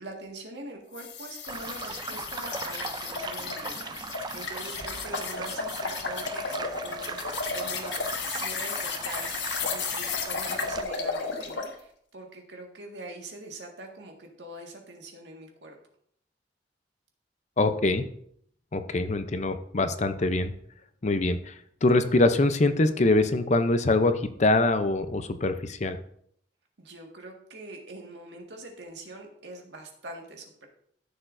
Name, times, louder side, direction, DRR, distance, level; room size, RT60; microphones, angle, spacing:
voice 1, 0.0-15.8 26.8-30.7, right 2 dB, 90° right, 1 dB, 1.8 m, -43 dB
sound 1, 0.9-11.7, left 5 dB, 85° left, 1.2 m, -34 dB
sound 2, 1.5-10.8, right 4 dB, 25° right, 0.5 m, -38 dB
voice 2, 17.6-18.0 18.7-20.5 21.0-21.5 21.8-26.0, left 2 dB, 40° left, 10 dB, 0.6 m, -24 dB
14.0 x 6.8 x 2.6 m, 0.68 s
head